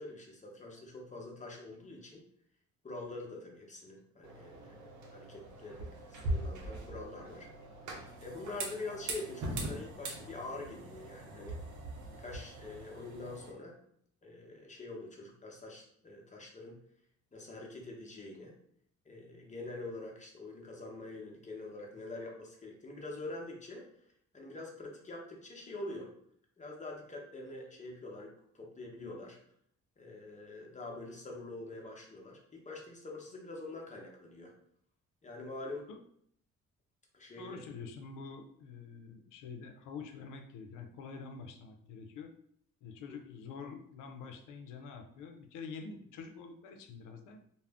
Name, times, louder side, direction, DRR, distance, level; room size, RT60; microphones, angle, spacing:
voice 1, 0.0-2.2 2.8-7.5 8.2-11.6 12.2-13.8 14.2-16.8 17.3-18.6 19.0-23.9 24.3-26.1 26.6-29.4 30.0-34.5 35.2-35.9 37.1-37.6 43.1-43.2, left 2 dB, 25° left, 0 dB, 0.8 m, -45 dB
sound 1, 4.2-13.5, right 1 dB, 75° right, 0.7 m, -42 dB
voice 2, 37.4-42.3 42.8-47.4, left 5 dB, 90° left, 5 dB, 0.5 m, -46 dB
2.4 x 2.1 x 3.4 m, 0.66 s
cardioid pair, 90°, 30 cm